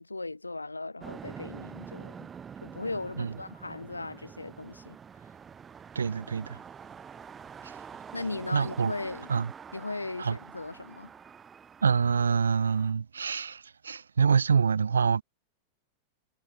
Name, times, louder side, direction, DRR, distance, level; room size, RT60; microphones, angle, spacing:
voice 1, 0.0-2.3 2.6-5.0 8.1-9.3 9.7-11.1, left 3 dB, 80° left, 3.2 m, -37 dB
sound 1, 1.0-12.9, right 7 dB, 20° right, 3.0 m, -46 dB
voice 2, 5.9-6.6 8.5-8.9 9.3-9.5 10.2-10.4 11.8-15.2, right 6 dB, 70° right, 0.9 m, -26 dB
figure-of-eight pair, 90°, 0 cm